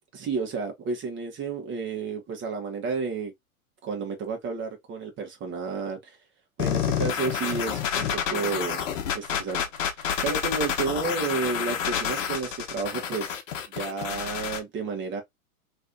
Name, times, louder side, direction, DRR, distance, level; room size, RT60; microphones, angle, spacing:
voice 1, 0.1-3.3 3.8-6.2 6.6-8.8 9.1-9.6 10.0-13.4 13.7-15.2, right 4 dB, 25° right, 1.3 m, -31 dB
sound 1, 6.6-14.6, left 8 dB, 60° left, 1.0 m, -29 dB
3.1 x 2.7 x 2.7 m
hypercardioid pair, 105°, 44 cm